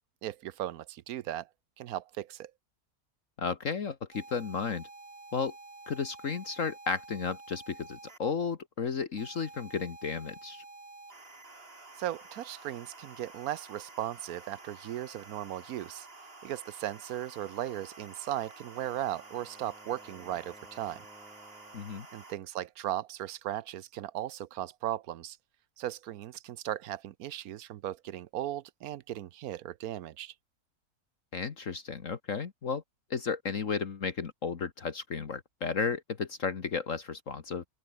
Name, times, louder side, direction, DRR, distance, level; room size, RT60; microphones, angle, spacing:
voice 1, 0.2-1.5 1.8-2.5 12.0-16.1 16.4-21.0 22.1-25.4 25.8-30.3, right 12 dB, 75° right, 1.1 m, -37 dB
voice 2, 3.4-4.9 5.3-5.5 5.9-10.6 21.7-22.1 31.3-32.8 33.1-37.7, left 5 dB, 55° left, 1.8 m, -33 dB
sound 1, 4.1-8.2 9.2-22.3, right 3 dB, 35° right, 3.3 m, -50 dB
Wind instrument woodwind instrument, 18.5-22.1, equal, ahead, 4.6 m, -58 dB
open air
omnidirectional pair, 1.6 m